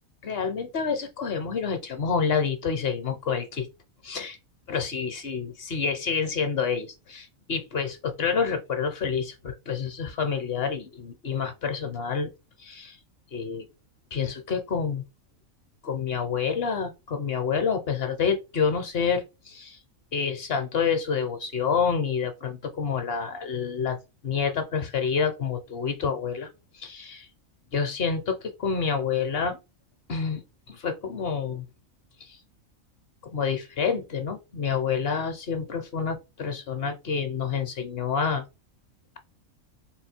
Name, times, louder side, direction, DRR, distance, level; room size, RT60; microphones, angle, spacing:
voice 1, 0.2-3.7 4.0-4.4 4.7-12.3 12.6-13.0 13.3-13.7 14.1-15.0 15.8-19.8 20.1-24.0 24.2-26.5 26.7-27.3 27.7-29.6 30.1-31.6 32.2-32.4 33.2-38.4, left 6 dB, 55° left, 0.8 m, -28 dB
3.9 x 2.3 x 4.3 m
omnidirectional pair, 1.4 m